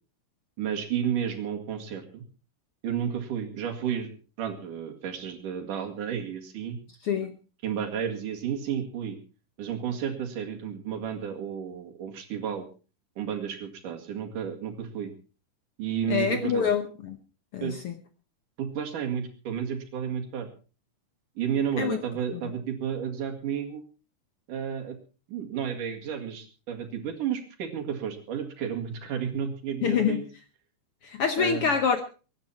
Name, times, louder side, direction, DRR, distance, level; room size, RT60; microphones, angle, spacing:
voice 1, 0.6-2.2 2.8-4.1 4.4-6.8 7.6-9.2 9.6-12.7 13.2-15.1 15.8-16.7 17.6-17.8 18.6-20.5 21.4-23.8 24.5-25.0 25.3-30.3 31.4-31.7, right 8 dB, 75° right, 3.7 m, -32 dB
voice 2, 16.1-17.2 17.5-17.9 21.8-22.0 29.8-30.2 31.0-32.0, left 7 dB, 65° left, 1.5 m, -26 dB
23.5 x 10.5 x 4.3 m
omnidirectional pair, 3.7 m